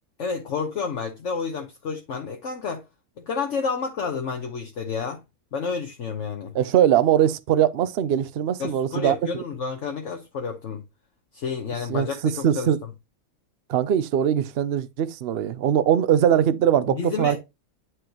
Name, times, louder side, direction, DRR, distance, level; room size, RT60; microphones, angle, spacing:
voice 1, 0.2-2.8 3.3-5.2 5.5-6.5 8.6-10.8 11.3-12.7 16.9-17.4, left 5 dB, 60° left, 1.3 m, -30 dB
voice 2, 6.5-9.1 11.9-12.8 13.7-17.4, right 10 dB, 55° right, 0.7 m, -21 dB
9.5 x 4.7 x 3.0 m
omnidirectional pair, 1.5 m